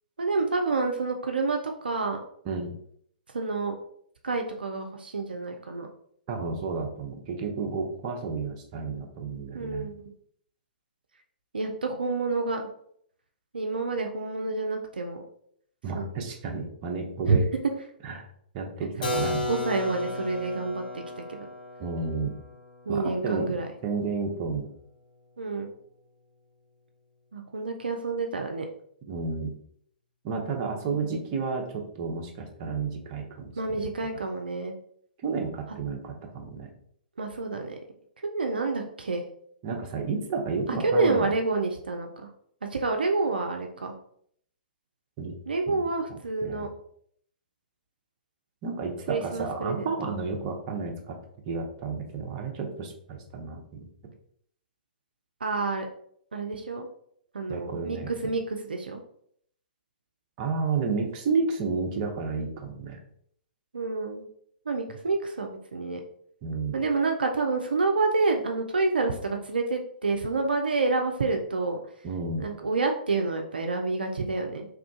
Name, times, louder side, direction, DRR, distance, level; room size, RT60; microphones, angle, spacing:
voice 1, 0.2-2.2 3.3-3.8 4.2-5.9 9.5-10.0 11.5-12.6 13.5-15.2 15.9-16.1 17.3-17.4 19.1-20.8 21.3-21.5 22.9-23.7 25.4-25.7 27.3-28.7 33.6-34.7 37.2-37.8 38.2-39.2 40.8-42.3 42.7-43.9 45.5-46.7 49.1-49.9 55.4-55.9 56.3-56.9 57.3-59.0 63.7-64.3 64.7-66.0 66.7-71.8 72.4-74.7, right 3 dB, 75° right, 3 dB, 0.4 m, -28 dB
voice 2, 6.3-9.9 15.8-17.5 18.0-18.3 18.5-19.5 21.8-22.4 22.9-24.7 29.1-29.5 30.2-33.8 35.2-36.7 39.6-41.3 45.2-45.4 45.7-45.8 46.1-46.7 48.6-51.2 51.5-53.6 57.5-58.1 60.4-63.0 66.4-66.8 72.0-72.5, right 4 dB, 35° right, 2 dB, 0.7 m, -31 dB
Keyboard (musical), 19.0-24.6, left 2 dB, 60° left, 0.7 m, -34 dB
3.0 x 2.4 x 3.6 m, 0.67 s
figure-of-eight pair, 115°, 5 cm